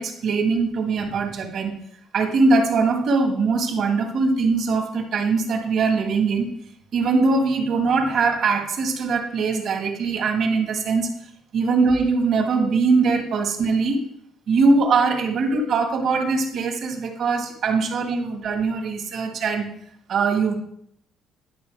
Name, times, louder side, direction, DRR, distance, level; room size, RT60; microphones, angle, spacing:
voice 1, 0.0-1.7 2.1-6.5 6.9-11.1 11.5-14.0 14.5-19.7 20.1-20.5, right 4 dB, 55° right, 4 dB, 2.0 m, -21 dB
11.0 x 5.4 x 4.8 m, 0.70 s
cardioid pair, 110°, 0 cm